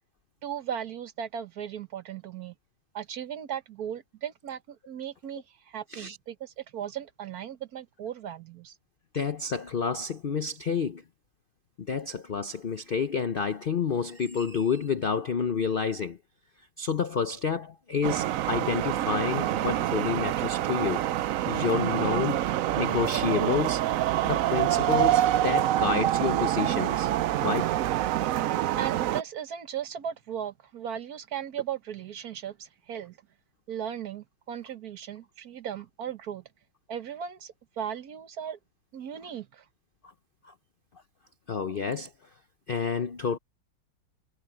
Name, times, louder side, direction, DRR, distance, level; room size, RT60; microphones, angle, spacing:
voice 1, 0.4-2.5 2.9-8.7 28.8-33.2 33.7-36.4 36.9-38.6 38.9-39.6, right 9 dB, 60° right, 1.3 m, -37 dB
voice 2, 9.1-11.0 11.8-16.2 16.8-21.0 21.5-22.4 22.8-23.8 24.2-27.1 27.4-27.7 40.4-40.5 41.5-42.1 42.7-43.4, left 6 dB, 75° left, 0.5 m, -29 dB
sound 1, 18.0-29.2, right 13 dB, 85° right, 0.7 m, -26 dB
omnidirectional pair, 2.0 m